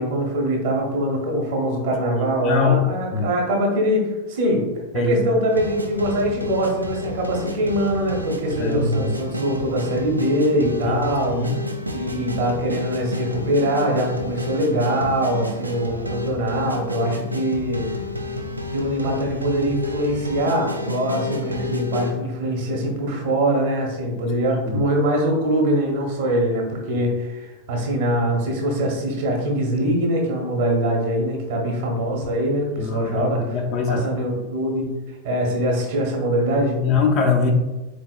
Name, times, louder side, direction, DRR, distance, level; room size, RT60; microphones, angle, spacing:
voice 1, 0.0-4.6 4.9-11.4 11.9-17.9 18.7-33.6 33.9-34.9 35.2-36.8, right 1 dB, 50° right, 1 dB, 0.9 m, -23 dB
voice 2, 2.4-2.9 3.1-3.3 4.9-5.2 8.5-9.1 10.8-11.0 11.3-11.6 24.6-24.8 32.8-34.0 36.8-37.5, left 4 dB, 35° left, 2 dB, 0.6 m, -22 dB
sound 1, 5.5-22.1, left 1 dB, 85° right, 0.3 m, -30 dB
4.0 x 3.4 x 2.3 m, 1.1 s
figure-of-eight pair, 90°, 0 cm